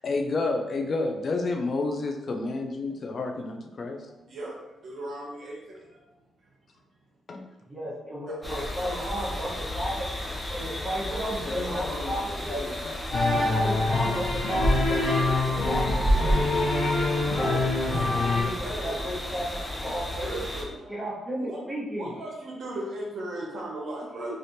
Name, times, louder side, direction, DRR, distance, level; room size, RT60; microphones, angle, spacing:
voice 1, 0.0-4.0 7.3-7.5 11.4-12.2 12.4-13.0, left 3 dB, 50° left, 3 dB, 0.5 m, -30 dB
voice 2, 4.0-6.0 8.3-9.5 11.1-12.1 18.6-19.0 20.1-20.9 21.4-21.6 22.0-24.3, right 2 dB, 65° right, -4 dB, 0.8 m, -37 dB
voice 3, 7.7-10.1 10.5-12.7 13.3-16.6 17.2-17.6 18.3-20.4 20.9-22.1 24.1-24.3, equal, 10° right, -7 dB, 1.2 m, -34 dB
sound 1, 8.4-20.6, equal, 10° left, 0.8 m, -31 dB
sound 2, 13.1-18.4, left 2 dB, 80° left, 1.2 m, -25 dB
3.3 x 2.5 x 2.8 m, 1.0 s
cardioid pair, 70°, 0 cm